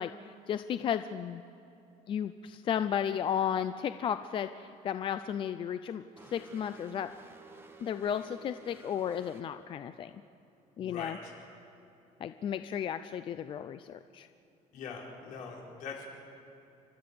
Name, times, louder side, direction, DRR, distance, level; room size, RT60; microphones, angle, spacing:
voice 1, 0.0-1.4 2.1-6.0 6.3-7.1 7.8-10.1 10.8-11.2 12.2-14.3, left 8 dB, 35° left, 11 dB, 0.5 m, -34 dB
sound 1, 6.2-9.4, right 3 dB, 15° right, 1.4 m, -53 dB
voice 2, 10.8-11.3 14.7-16.2, left 5 dB, 70° left, -2 dB, 4.7 m, -42 dB
30.0 x 13.0 x 6.9 m, 2.9 s
cardioid pair, 155°, 14 cm